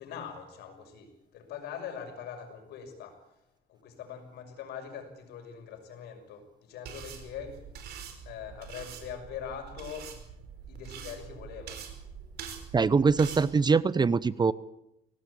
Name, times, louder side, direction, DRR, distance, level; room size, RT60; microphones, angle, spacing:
voice 1, 0.0-3.2 3.7-7.6 8.2-10.1 10.7-11.8, left 7 dB, 80° left, 6 dB, 6.2 m, -42 dB
sound 1, 6.9-13.5, right 7 dB, 70° right, 5.1 m, -44 dB
voice 2, 12.7-14.5, right 5 dB, 25° right, 18 dB, 0.8 m, -23 dB
23.0 x 18.0 x 8.6 m, 0.82 s
cardioid pair, 110°, 17 cm